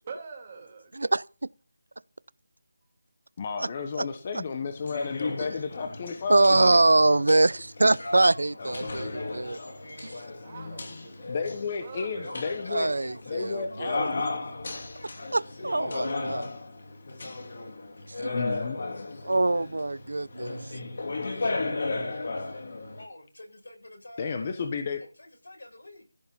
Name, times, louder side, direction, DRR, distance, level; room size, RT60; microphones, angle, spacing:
voice 1, 0.1-1.0 10.4-11.3 11.8-12.4, right 5 dB, 20° right, 2.6 m, -43 dB
voice 2, 0.9-1.2 6.3-9.6 12.7-14.1 15.3-16.5 18.2-18.4 19.2-20.6, right 2 dB, 75° right, 0.5 m, -23 dB
voice 3, 3.4-6.8 11.3-12.9 13.3-14.1 18.3-18.8 24.2-25.0, left 5 dB, 20° left, 1.1 m, -32 dB
sound 1, 4.7-23.0, left 3 dB, 40° left, 2.8 m, -35 dB
voice 4, 8.0-8.6 8.9-10.6 11.1-11.4 12.2-16.3 23.0-24.5 25.0-26.0, left 1 dB, 85° left, 7.6 m, -46 dB
15.0 x 7.2 x 5.4 m
figure-of-eight pair, 175°, 0 cm